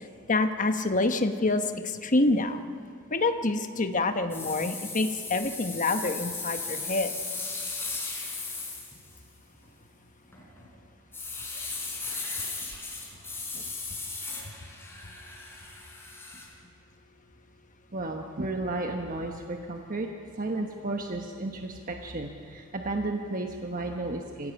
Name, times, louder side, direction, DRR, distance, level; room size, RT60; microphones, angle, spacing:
voice 1, 0.3-2.6 3.1-7.1, left 2 dB, 40° left, 8 dB, 1.2 m, -26 dB
sound 1, 4.3-9.2 10.3-10.6 11.1-16.4, left 3 dB, 10° left, 4.9 m, -36 dB
voice 2, 17.9-20.1 20.4-24.5, right 2 dB, 40° right, 3 dB, 1.2 m, -33 dB
24.5 x 16.0 x 8.6 m, 2.3 s
head